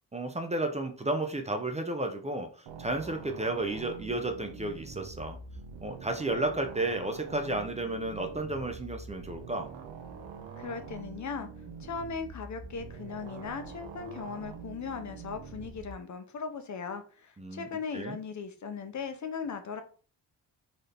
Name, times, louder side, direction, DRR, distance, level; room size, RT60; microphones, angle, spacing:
voice 1, 0.1-5.4 5.8-9.7 17.4-17.7 17.9-18.2, right 2 dB, 15° right, 5 dB, 0.3 m, -32 dB
sound 1, 2.7-15.9, right 5 dB, 85° right, 0.8 m, -45 dB
voice 2, 10.6-11.5 11.8-19.8, left 5 dB, 40° left, 8 dB, 0.6 m, -38 dB
4.0 x 2.7 x 3.2 m, 0.39 s
wide cardioid pair, 140°, 44 cm